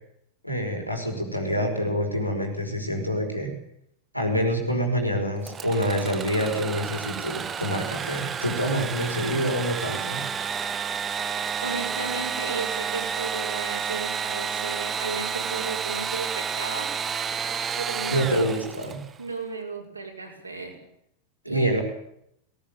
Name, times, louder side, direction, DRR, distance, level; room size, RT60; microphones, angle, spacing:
voice 1, 0.4-3.5 4.1-10.2 18.1-19.0 21.5-21.8, equal, 90° left, 2 dB, 5.2 m, -26 dB
Engine / Sawing, 5.4-19.1, right 7 dB, 20° right, 1.1 m, -30 dB
voice 2, 11.6-16.9 17.3-18.6 19.2-20.7 21.5-21.7, right 4 dB, 80° right, 0 dB, 5.7 m, -35 dB
19.0 x 18.5 x 9.0 m, 0.76 s
figure-of-eight pair, 90°, 0 cm